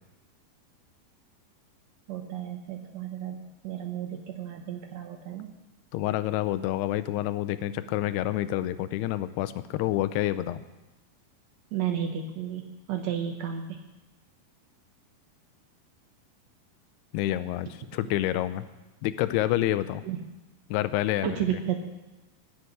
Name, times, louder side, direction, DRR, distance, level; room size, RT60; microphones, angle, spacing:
voice 1, 2.1-5.5 11.7-13.8 20.0-20.2 21.2-21.8, right 9 dB, 85° right, 3 dB, 1.5 m, -33 dB
voice 2, 5.9-10.6 17.1-18.7 19.0-20.0 20.7-21.6, left 14 dB, 85° left, 13 dB, 2.7 m, -28 dB
19.5 x 6.9 x 9.5 m, 1.0 s
omnidirectional pair, 4.6 m